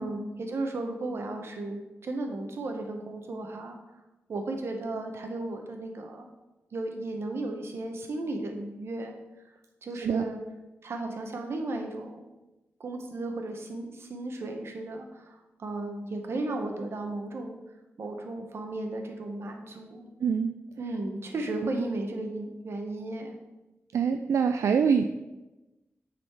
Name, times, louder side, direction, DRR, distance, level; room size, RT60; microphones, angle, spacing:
voice 1, 0.0-3.8 4.3-6.3 6.7-9.2 9.8-10.4 10.8-12.3 12.8-17.6 18.0-20.1 20.8-23.3, right 2 dB, 60° right, 3 dB, 1.0 m, -35 dB
voice 2, 20.2-20.6 23.9-25.0, right 6 dB, 80° right, 7 dB, 0.3 m, -24 dB
9.4 x 4.2 x 4.5 m, 1.1 s
wide cardioid pair, 175°, 5 cm